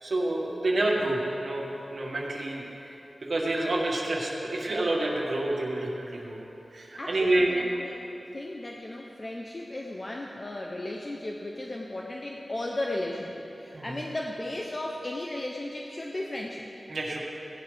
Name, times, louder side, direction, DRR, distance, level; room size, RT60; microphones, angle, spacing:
voice 1, 0.0-2.9 3.3-6.4 6.7-7.5 13.7-13.9 16.9-17.2, right 2 dB, 75° right, -3 dB, 2.0 m, -28 dB
voice 2, 7.0-8.1 8.3-16.7, left 1 dB, 35° left, 0 dB, 0.8 m, -35 dB
17.5 x 11.5 x 3.5 m, 3.0 s
wide cardioid pair, 80°, 0 cm